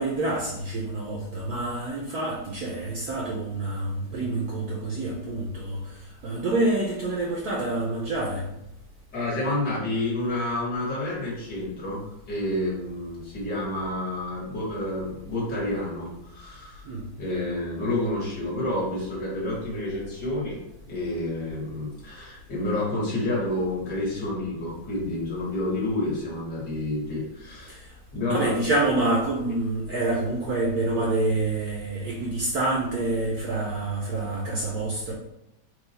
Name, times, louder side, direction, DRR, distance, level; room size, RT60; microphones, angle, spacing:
voice 1, 0.0-5.8 6.2-8.4 16.9-17.0 27.7-27.8 28.3-35.1, right 2 dB, 65° right, -2 dB, 1.0 m, -27 dB
voice 2, 9.1-16.9 17.2-20.6 20.8-27.8 28.1-28.5, left 1 dB, 60° left, -5 dB, 2.0 m, -29 dB
4.6 x 2.4 x 4.0 m, 0.84 s
omnidirectional pair, 2.1 m